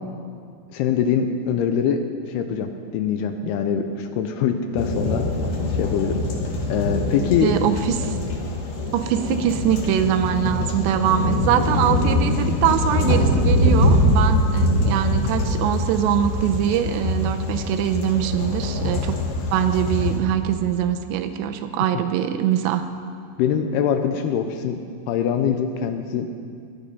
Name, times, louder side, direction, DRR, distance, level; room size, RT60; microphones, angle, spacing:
voice 1, 0.7-2.0 2.3-5.2 5.7-6.2 6.7-7.5 23.4-26.3, left 8 dB, 85° left, 7 dB, 2.5 m, -23 dB
sound 1, 4.8-20.2, left 1 dB, 55° left, 2.0 m, -23 dB
voice 2, 7.4-8.2 8.9-19.2 19.5-22.9, right 10 dB, 85° right, 7 dB, 2.9 m, -23 dB
16.5 x 11.0 x 5.4 m, 2.3 s
omnidirectional pair, 5.0 m